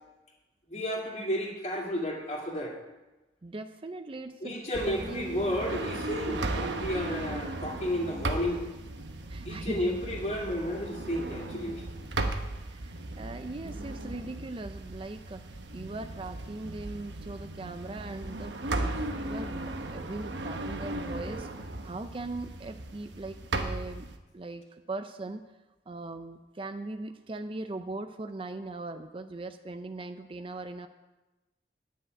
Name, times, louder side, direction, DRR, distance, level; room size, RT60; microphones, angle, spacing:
voice 1, 0.7-2.8 4.4-8.6 9.4-11.8, equal, 40° left, -1 dB, 2.4 m, -32 dB
voice 2, 3.4-4.6 4.9-5.6 9.3-10.0 10.2-10.4 12.7-15.5 15.7-21.5 21.8-24.1 24.3-25.5 25.9-30.9, right 2 dB, 30° right, 9 dB, 0.5 m, -40 dB
sound 1, 4.7-24.2, right 2 dB, 85° right, 1.0 m, -36 dB
10.5 x 6.4 x 8.9 m, 1.1 s
head